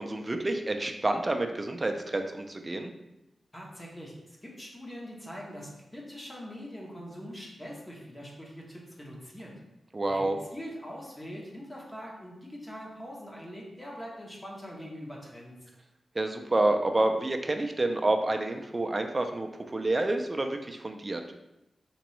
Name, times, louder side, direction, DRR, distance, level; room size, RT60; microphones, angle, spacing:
voice 1, 0.0-2.9 9.9-10.4 16.2-21.2, right 2 dB, 25° right, 5 dB, 0.3 m, -28 dB
voice 2, 3.5-9.5 10.1-15.7, equal, 15° left, -3 dB, 0.8 m, -43 dB
3.5 x 3.0 x 3.0 m, 0.92 s
wide cardioid pair, 125°, 0 cm